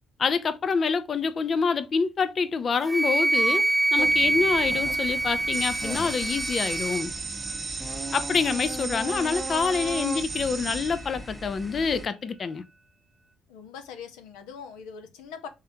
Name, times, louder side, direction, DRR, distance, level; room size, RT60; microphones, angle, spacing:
voice 1, 0.2-7.1 8.1-12.6, left 5 dB, 45° left, 0.6 m, -26 dB
Wind instrument woodwind instrument, 2.9-7.0, right 2 dB, 20° right, 0.4 m, -25 dB
sound 1, 4.0-12.1, right 1 dB, 5° left, 1.0 m, -38 dB
sound 2, 5.5-11.7, right 4 dB, 40° right, 1.0 m, -35 dB
voice 2, 13.5-15.5, left 6 dB, 85° left, 0.7 m, -42 dB
3.6 x 3.3 x 2.7 m
supercardioid pair, 60°, 0 cm